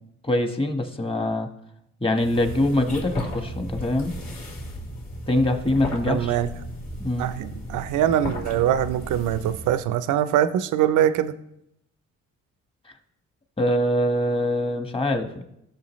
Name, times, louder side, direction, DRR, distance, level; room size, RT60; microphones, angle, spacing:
voice 1, 0.2-1.5 2.0-4.1 5.3-6.4 7.0-7.3 13.6-15.4, left 1 dB, 20° left, 6 dB, 1.3 m, -23 dB
sound 1, 2.2-9.9, equal, 65° left, 3.6 m, -35 dB
voice 2, 6.1-6.5 7.2-11.3, right 11 dB, 85° right, 12 dB, 0.6 m, -23 dB
16.0 x 6.8 x 3.1 m, 0.80 s
cardioid pair, 90°, 30 cm